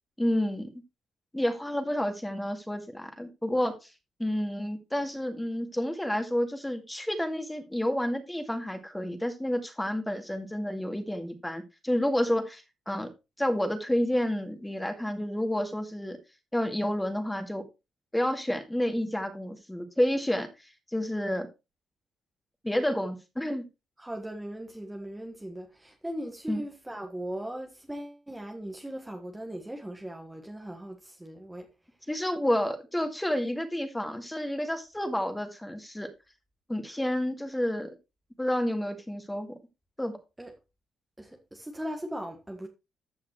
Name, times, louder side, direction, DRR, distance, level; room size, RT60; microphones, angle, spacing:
voice 1, 0.2-0.7 1.3-3.9 4.2-13.1 13.4-16.2 16.5-17.6 18.1-21.5 22.6-23.6 26.5-26.6 32.1-36.1 36.7-37.9 38.4-39.6 40.0-40.1, left 1 dB, 5° left, 2.1 m, -30 dB
voice 2, 24.0-31.7 40.4-40.5 41.2-42.7, right 1 dB, 10° right, 1.6 m, -39 dB
14.0 x 5.7 x 3.1 m
cardioid pair, 90°, 0 cm